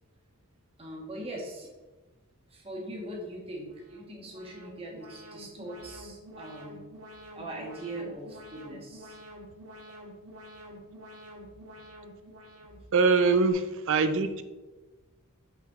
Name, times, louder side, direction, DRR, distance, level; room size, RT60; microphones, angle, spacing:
voice 1, 0.8-1.7 2.5-6.9 7.3-9.2 12.6-12.7, right 1 dB, 25° right, -2 dB, 1.3 m, -41 dB
Alarm, 3.7-13.5, equal, 85° right, 1.7 m, -48 dB
voice 2, 12.9-14.4, right 4 dB, 60° right, 10 dB, 0.5 m, -23 dB
6.0 x 5.7 x 3.6 m, 1.2 s
head